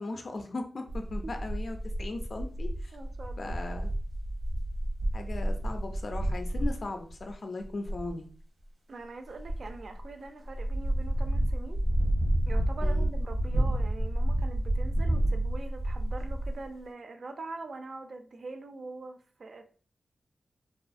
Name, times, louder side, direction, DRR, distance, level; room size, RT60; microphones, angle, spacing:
voice 1, 0.0-3.0 3.4-3.9 5.1-8.2 12.8-13.1, left 2 dB, 50° left, 5 dB, 0.3 m, -38 dB
sound 1, 0.9-6.8 7.1-7.3 7.6-8.1 9.4-10.1 10.4-16.7, right 1 dB, 85° right, 0.8 m, -30 dB
voice 2, 2.9-3.6 8.9-11.8 12.5-19.7, right 3 dB, 65° right, 6 dB, 0.3 m, -43 dB
2.6 x 2.3 x 2.4 m, 0.43 s
wide cardioid pair, 105°, 0 cm